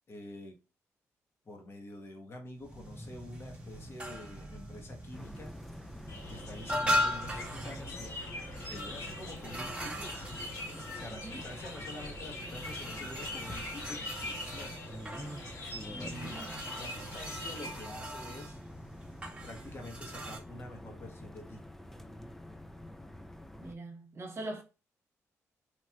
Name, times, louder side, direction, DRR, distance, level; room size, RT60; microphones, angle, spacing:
voice 1, 0.1-0.6 1.4-5.5 6.3-8.2 8.7-10.0 10.9-14.8 15.9-16.4 16.8-18.6 19.4-21.6, left 1 dB, 45° left, 1.0 m, -47 dB
sound 1, 2.6-20.4, equal, 20° right, 1.0 m, -40 dB
sound 2, 5.1-23.7, left 1 dB, 5° left, 0.3 m, -47 dB
sound 3, 6.1-17.8, left 2 dB, 80° left, 1.6 m, -44 dB
voice 2, 11.1-11.4 16.0-16.6 23.6-24.6, right 2 dB, 45° right, 1.0 m, -42 dB
3.0 x 2.6 x 2.3 m
cardioid pair, 85°, 6 cm